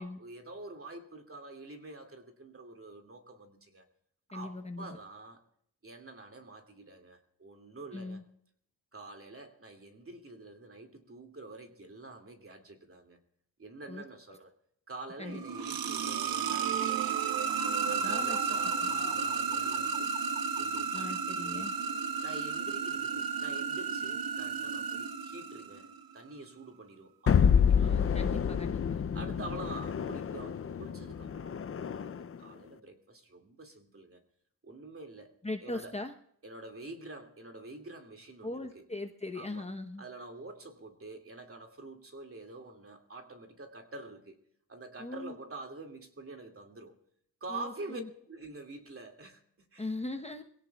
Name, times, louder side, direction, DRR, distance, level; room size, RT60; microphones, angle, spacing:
voice 1, 0.0-3.9 4.3-5.4 5.8-8.2 8.9-13.2 13.6-14.5 14.9-17.3 17.8-20.1 20.6-21.1 22.2-25.9 26.1-27.9 29.1-34.2 34.6-36.0 36.4-38.8 39.3-39.7 40.0-44.4 44.7-47.0 47.4-49.9, right 2 dB, 35° right, 4 dB, 2.3 m, -47 dB
voice 2, 4.3-5.0 7.9-8.2 13.9-14.0 15.2-15.4 18.0-18.4 20.9-21.7 27.8-29.0 35.4-36.1 38.4-40.0 45.0-45.3 47.5-48.1 49.8-50.4, left 2 dB, 15° left, 5 dB, 0.9 m, -39 dB
sound 1, 15.2-26.0, right 6 dB, 60° right, 1.0 m, -33 dB
sound 2, 27.3-32.4, left 7 dB, 35° left, 0.5 m, -28 dB
22.5 x 17.0 x 2.3 m, 0.69 s
cardioid pair, 95°, 40 cm